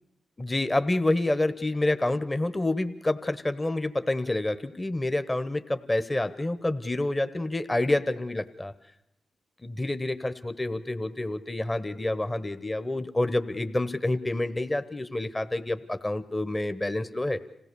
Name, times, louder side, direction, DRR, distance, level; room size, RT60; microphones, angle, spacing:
voice 1, 0.4-8.7 9.6-17.4, left 2 dB, 25° left, 11 dB, 1.1 m, -28 dB
26.5 x 16.5 x 7.0 m, 0.79 s
supercardioid pair, 45°, 0 cm